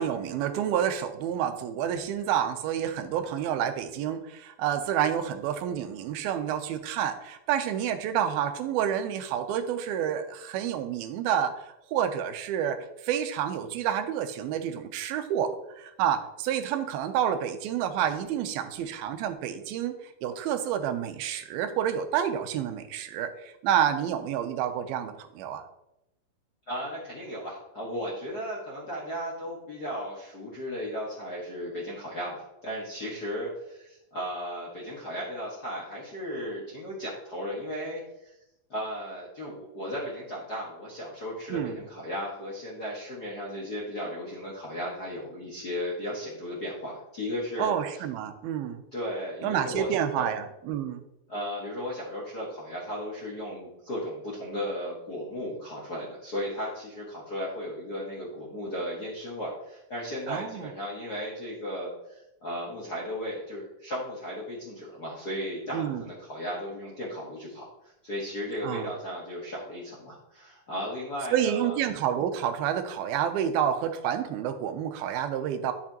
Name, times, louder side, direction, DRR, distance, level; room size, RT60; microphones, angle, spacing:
voice 1, 0.0-11.5 11.9-12.8 13.0-15.5 15.8-19.9 20.2-25.6 41.5-41.8 47.6-48.8 49.4-51.0 60.3-60.7 65.7-66.0 68.6-68.9 71.3-75.7, right 9 dB, 85° right, 8 dB, 2.6 m, -29 dB
voice 2, 26.7-38.3 38.7-48.0 48.9-50.3 51.3-71.8, equal, 55° left, -5 dB, 1.1 m, -35 dB
11.0 x 6.7 x 2.9 m, 0.88 s
omnidirectional pair, 4.3 m